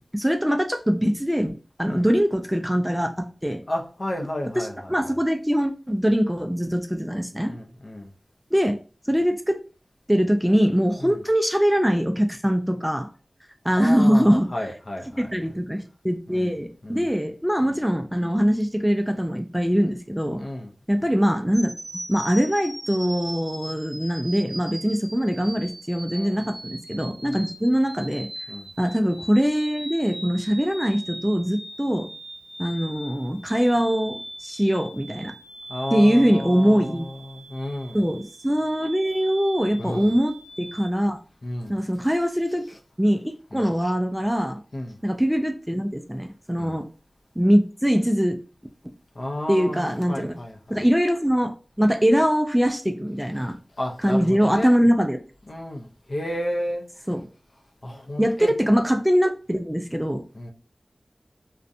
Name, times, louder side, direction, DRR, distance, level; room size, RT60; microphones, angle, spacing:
voice 1, 0.1-3.6 4.6-7.5 8.5-8.8 9.1-9.6 10.1-13.1 13.6-14.5 15.2-20.4 20.9-28.3 28.8-32.1 32.6-35.3 35.9-37.1 37.9-41.2 41.7-42.6 43.0-44.6 45.0-46.9 47.4-48.4 49.5-50.4 50.7-53.6 54.0-55.2 57.1-57.3 58.2-60.2, equal, 5° right, 0.3 m, -22 dB
voice 2, 3.7-4.7 7.5-8.1 11.0-11.2 13.7-15.2 16.3-16.5 16.8-17.0 20.4-20.7 26.1-26.4 27.2-27.5 28.5-28.7 35.7-38.0 39.8-40.1 41.4-41.7 43.5-43.6 44.7-45.0 46.6-46.8 49.1-50.8 53.8-54.7 55.5-56.9 57.8-58.5 60.3-60.5, left 1 dB, 50° left, 0.5 m, -32 dB
sound 1, 21.5-40.9, right 1 dB, 50° right, 0.8 m, -40 dB
2.4 x 2.1 x 2.6 m
wide cardioid pair, 60°, 0 cm